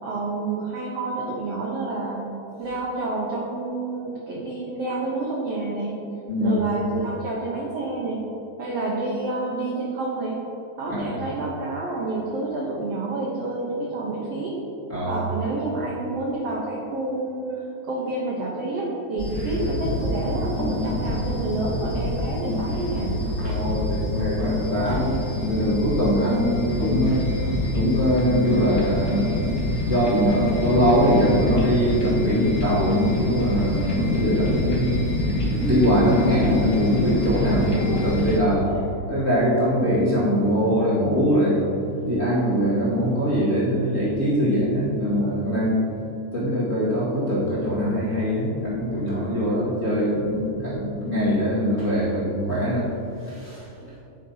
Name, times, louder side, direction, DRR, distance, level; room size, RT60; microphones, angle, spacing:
voice 1, 0.0-2.3 2.6-6.0 6.4-8.3 8.6-10.4 10.8-14.5 15.1-17.5 17.8-23.2 37.3-38.0 38.6-38.8, right 2 dB, 70° right, -3 dB, 1.5 m, -29 dB
voice 2, 14.9-15.2 23.4-27.2 27.7-29.4 29.8-38.7 39.1-41.7 42.1-45.8 46.3-52.9 53.2-53.9, equal, 30° left, -10 dB, 1.6 m, -22 dB
sound 1, 19.2-38.4, left 1 dB, 75° left, 0.9 m, -26 dB
10.0 x 9.3 x 2.8 m, 2.9 s
omnidirectional pair, 4.2 m